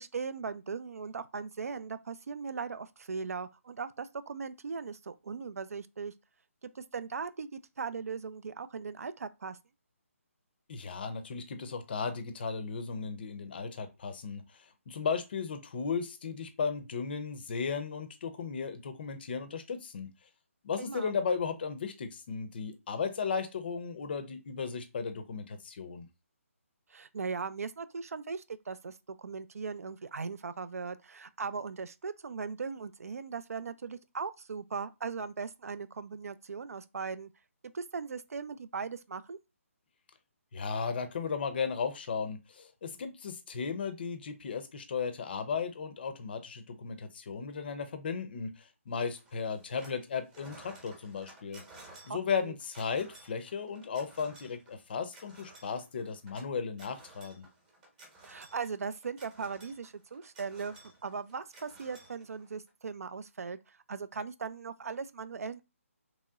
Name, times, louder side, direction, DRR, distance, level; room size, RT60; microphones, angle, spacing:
voice 1, 0.0-6.1 6.7-9.6 20.8-21.1 26.9-37.3 37.7-39.4 52.1-52.5 58.2-60.8 61.0-65.6, right 5 dB, 80° right, 0.3 m, -39 dB
voice 2, 10.7-20.1 20.6-26.1 40.5-51.6 52.0-57.5, left 5 dB, 45° left, 0.5 m, -35 dB
sound 1, 49.2-50.0 50.3-62.7, right 2 dB, 20° right, 0.8 m, -55 dB
3.0 x 2.7 x 2.3 m
hypercardioid pair, 160°, 8 cm